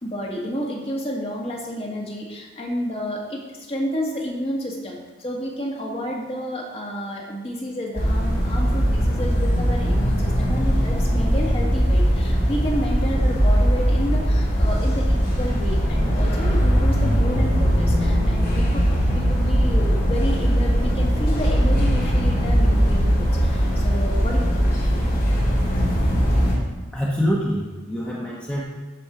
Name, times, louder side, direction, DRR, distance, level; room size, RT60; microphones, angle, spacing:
voice 1, 0.0-18.8 19.1-24.7, equal, 30° left, -2 dB, 1.7 m, -30 dB
sound 1, 8.0-26.5, equal, 50° left, 3.1 m, -20 dB
voice 2, 26.9-28.6, equal, 5° left, -5 dB, 1.0 m, -25 dB
13.0 x 4.4 x 5.0 m, 1.2 s
head